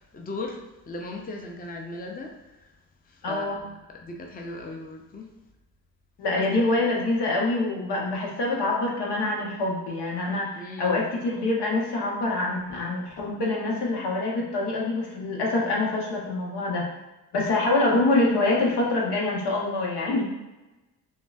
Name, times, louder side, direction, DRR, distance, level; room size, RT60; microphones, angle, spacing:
voice 1, 0.1-2.3 3.3-5.3 6.3-6.4 10.6-11.0 17.4-17.5, left 2 dB, 20° left, 1 dB, 0.7 m, -37 dB
voice 2, 3.2-3.6 6.2-16.9 17.3-20.2, left 2 dB, 75° left, -2 dB, 1.1 m, -25 dB
5.3 x 2.2 x 2.4 m, 1.0 s
supercardioid pair, 55°, 40 cm